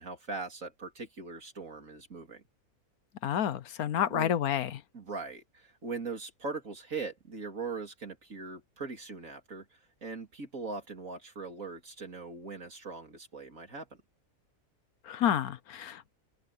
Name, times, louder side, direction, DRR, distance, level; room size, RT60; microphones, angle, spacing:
voice 1, 0.0-2.4 4.0-4.3 4.9-14.0, right 4 dB, 60° right, 3.7 m, -40 dB
voice 2, 3.2-4.7 15.1-16.1, left 10 dB, 75° left, 1.3 m, -29 dB
omnidirectional pair, 1.6 m